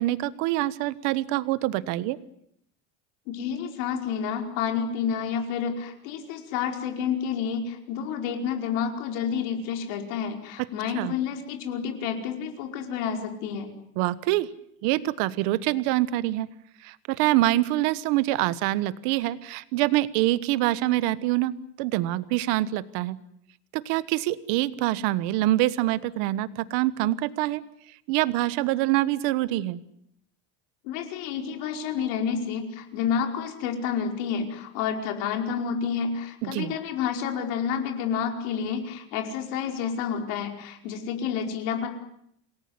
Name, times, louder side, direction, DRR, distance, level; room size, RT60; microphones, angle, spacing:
voice 1, 0.0-2.2 10.6-10.7 10.9-11.1 14.0-14.5 14.8-16.5 16.8-23.2 23.7-27.6 28.1-29.8 36.4-36.7, right 16 dB, 70° right, 16 dB, 1.3 m, -25 dB
voice 2, 3.3-13.7 30.8-41.9, left 7 dB, 75° left, 4 dB, 5.1 m, -29 dB
28.5 x 19.5 x 9.7 m, 0.74 s
cardioid pair, 165°, 35 cm